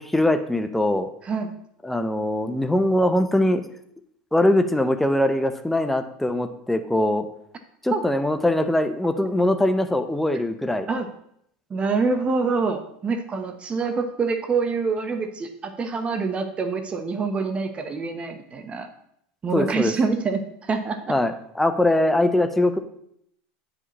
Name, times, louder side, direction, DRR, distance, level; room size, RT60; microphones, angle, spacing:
voice 1, 0.0-1.1 1.8-3.6 4.3-7.3 7.8-10.9 19.5-19.9 21.1-22.8, left 1 dB, 5° left, 8 dB, 0.6 m, -22 dB
voice 2, 11.7-18.9 19.4-21.0, right 4 dB, 25° right, 7 dB, 0.8 m, -26 dB
9.4 x 5.1 x 2.9 m, 0.72 s
supercardioid pair, 110°, 5 cm